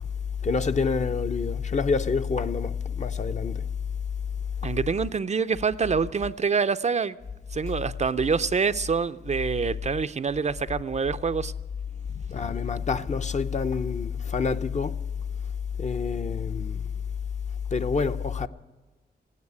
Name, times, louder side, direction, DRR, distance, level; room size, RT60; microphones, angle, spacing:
voice 1, 0.4-3.6 4.6-4.7 12.3-14.9 15.8-16.8 17.7-18.5, left 5 dB, 40° left, 0.7 m, -27 dB
voice 2, 4.6-7.2 7.5-11.5, right 5 dB, 40° right, 0.5 m, -26 dB
15.5 x 9.6 x 9.6 m
cardioid pair, 65°, 18 cm